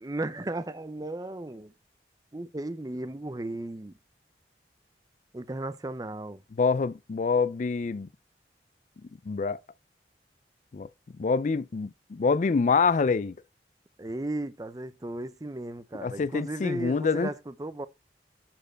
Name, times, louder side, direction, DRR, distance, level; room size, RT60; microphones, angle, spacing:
voice 1, 0.0-1.7 2.3-3.9 5.3-6.4 14.0-17.9, right 1 dB, 20° right, 0.6 m, -35 dB
voice 2, 6.6-8.1 9.3-9.6 10.7-10.9 11.1-13.3 16.0-17.3, left 4 dB, 45° left, 0.4 m, -26 dB
10.0 x 4.5 x 4.4 m
head